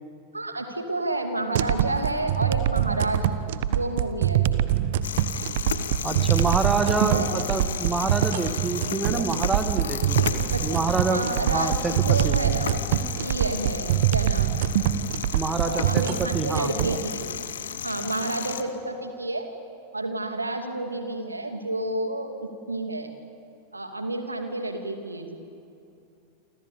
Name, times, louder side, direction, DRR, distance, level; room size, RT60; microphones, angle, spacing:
voice 1, 0.3-3.4 3.7-4.6 7.0-7.6 10.2-10.8 11.1-14.7 15.6-17.2 17.8-19.5 19.9-23.1 23.7-25.4, right 2 dB, 80° right, 6 dB, 2.6 m, -30 dB
sound 1, 1.6-17.0, right 11 dB, 55° right, 1.2 m, -24 dB
sound 2, 5.0-18.6, left 8 dB, 65° left, 1.4 m, -33 dB
voice 2, 6.0-10.2 10.6-11.2 11.5-12.0 12.2-12.4 15.3-16.7, right 4 dB, 15° right, 8 dB, 2.0 m, -27 dB
28.5 x 26.5 x 7.2 m, 2.7 s
figure-of-eight pair, 90°, 0 cm